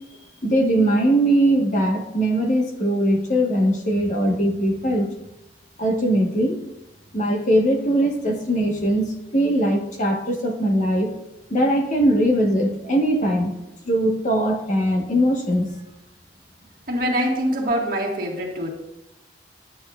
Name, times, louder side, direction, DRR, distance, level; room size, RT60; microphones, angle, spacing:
voice 1, 0.4-5.1 5.8-6.6 7.1-9.1 9.3-11.1 11.5-13.6 13.8-15.7, right 1 dB, 45° left, 2 dB, 1.3 m, -20 dB
voice 2, 16.9-18.7, equal, 55° right, -2 dB, 1.7 m, -24 dB
9.9 x 8.7 x 2.4 m, 0.90 s
head